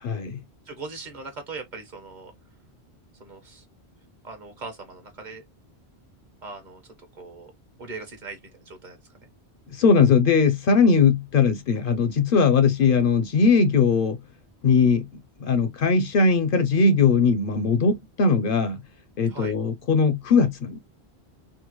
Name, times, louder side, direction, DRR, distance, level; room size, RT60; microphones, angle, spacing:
voice 1, 0.0-0.4 9.7-14.2 14.6-15.1 15.4-18.8 19.2-20.8, left 5 dB, 60° left, 0.7 m, -20 dB
voice 2, 0.7-2.3 3.2-3.6 4.2-5.4 6.4-7.5 7.8-9.3 19.3-19.5, right 3 dB, 45° right, 1.0 m, -40 dB
3.6 x 2.1 x 2.9 m
omnidirectional pair, 1.1 m